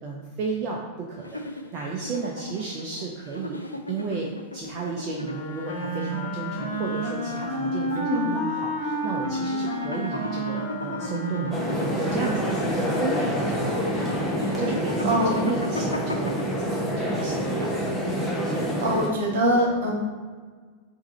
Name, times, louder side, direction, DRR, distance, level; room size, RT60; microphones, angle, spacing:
voice 1, 0.0-3.6 3.9-14.1 14.6-18.2, right 4 dB, 35° right, -1 dB, 0.5 m, -33 dB
sound 1, 1.2-18.0, left 1 dB, 85° left, 0.4 m, -37 dB
Wind instrument woodwind instrument, 5.2-12.5, equal, 35° left, 1.4 m, -31 dB
voice 2, 8.0-8.3 15.0-15.4 18.5-19.9, equal, 55° right, -2 dB, 1.3 m, -24 dB
sound 2, 11.5-19.1, equal, ahead, 0.9 m, -27 dB
4.7 x 2.7 x 4.1 m, 1.5 s
figure-of-eight pair, 90°, 0 cm